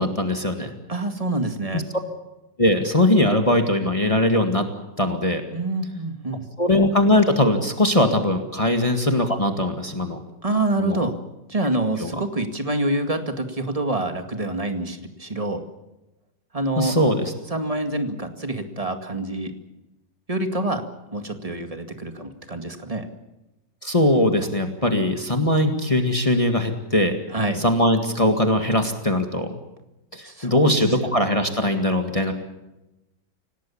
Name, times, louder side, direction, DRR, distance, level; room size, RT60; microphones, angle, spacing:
voice 1, 0.0-0.7 1.7-1.8 2.6-4.6 5.0-5.4 6.6-10.2 10.8-11.0 12.0-12.1 16.8-17.3 23.8-27.2 27.6-29.6 30.1-32.3, left 1 dB, 20° left, 5 dB, 1.9 m, -20 dB
voice 2, 0.9-1.8 5.5-6.5 10.4-11.2 11.5-15.6 16.5-17.0 17.5-19.5 20.3-20.8 21.1-23.1 25.7-26.1 27.3-27.6 30.2-30.8, right 2 dB, 20° right, 6 dB, 2.2 m, -26 dB
26.0 x 18.5 x 7.3 m, 0.99 s
omnidirectional pair, 1.9 m